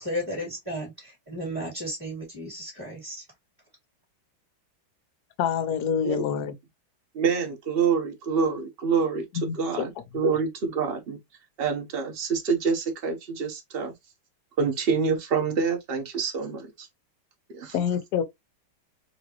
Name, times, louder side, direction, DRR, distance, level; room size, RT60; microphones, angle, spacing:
voice 1, 0.0-3.2, equal, 10° right, 2.3 m, -34 dB
voice 2, 5.4-6.5 9.3-9.6 17.7-18.2, left 7 dB, 65° left, 1.0 m, -26 dB
voice 3, 7.1-11.2 11.6-13.9 14.6-16.9 17.5-17.7, right 5 dB, 45° right, 0.8 m, -26 dB
4.0 x 3.0 x 2.9 m
omnidirectional pair, 2.3 m